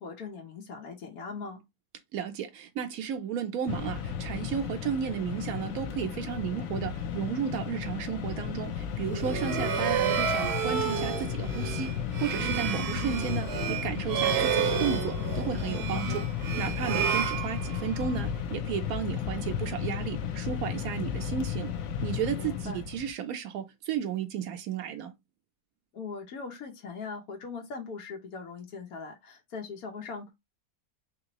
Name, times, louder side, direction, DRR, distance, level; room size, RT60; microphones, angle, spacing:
voice 1, 0.0-1.6 15.9-16.3 22.4-22.8 25.9-30.3, left 4 dB, 90° left, 1.3 m, -40 dB
voice 2, 2.1-11.9 12.2-16.2 16.6-21.7 22.0-25.1, right 8 dB, 85° right, 1.1 m, -33 dB
Mechanisms, 3.7-23.1, left 8 dB, 75° left, 1.0 m, -34 dB
sound 1, 9.0-18.1, right 8 dB, 60° right, 0.8 m, -30 dB
3.7 x 2.9 x 2.9 m
omnidirectional pair, 1.5 m